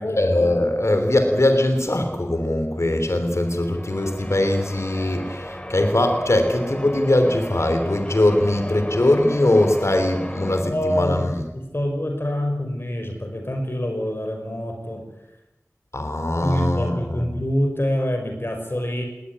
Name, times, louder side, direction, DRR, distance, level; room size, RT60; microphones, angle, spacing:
voice 1, 0.0-11.3 15.9-17.3, left 1 dB, 65° left, 7 dB, 3.2 m, -21 dB
Church bell, 3.3-10.6, equal, 20° left, 2.7 m, -35 dB
voice 2, 10.6-11.3 11.5-15.0 16.4-19.1, equal, 50° left, 3 dB, 5.6 m, -26 dB
19.5 x 19.5 x 9.9 m, 0.96 s
wide cardioid pair, 45°, 5 cm